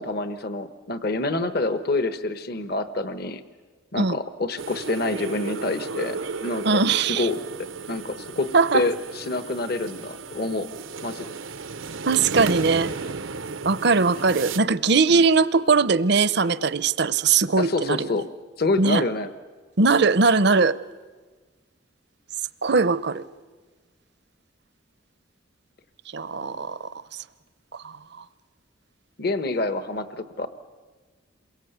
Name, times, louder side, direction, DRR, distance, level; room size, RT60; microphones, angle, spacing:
voice 1, 0.0-3.4 3.9-6.7 7.1-7.4 7.9-10.7 11.0-11.2 15.1-15.2 17.6-18.3 18.6-19.3 29.2-30.5, left 2 dB, 50° left, 10 dB, 1.2 m, -27 dB
sound 1, 4.6-14.6, right 4 dB, 85° right, 0.9 m, -33 dB
voice 2, 6.6-7.3 8.5-8.8 12.1-12.9 13.6-18.1 18.8-19.0 19.8-20.8 22.6-23.2 26.1-26.9 27.8-27.9, right 4 dB, 60° right, 16 dB, 0.7 m, -20 dB
28.5 x 22.5 x 8.1 m, 1.4 s
head